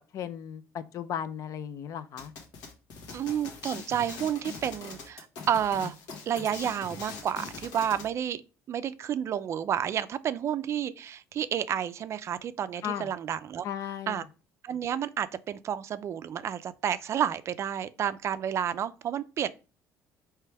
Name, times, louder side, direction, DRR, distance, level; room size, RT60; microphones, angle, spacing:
voice 1, 0.1-2.3 12.8-13.1 13.6-14.2, left 9 dB, 55° left, 0.5 m, -36 dB
sound 1, 2.2-8.1, left 4 dB, 80° left, 1.3 m, -42 dB
voice 2, 3.1-5.9 6.3-8.4 8.7-13.6 14.1-14.2 14.6-19.5, right 9 dB, 45° right, 0.3 m, -30 dB
4.5 x 3.0 x 3.3 m
cardioid pair, 115°, 7 cm